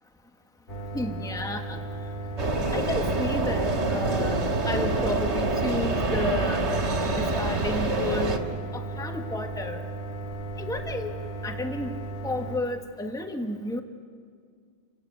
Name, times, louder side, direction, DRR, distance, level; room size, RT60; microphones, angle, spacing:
sound 1, 0.7-12.6, right 2 dB, 50° left, 1.9 m, -36 dB
voice 1, 0.9-1.8 2.7-4.4 4.6-6.7 7.0-8.4 8.7-9.8 10.6-11.1 11.4-12.0 12.2-13.8, left 1 dB, 5° left, 5 dB, 1.2 m, -32 dB
sound 2, 2.4-8.4, right 2 dB, 85° right, 2.0 m, -26 dB
29.0 x 17.0 x 8.3 m, 2.1 s
omnidirectional pair, 1.1 m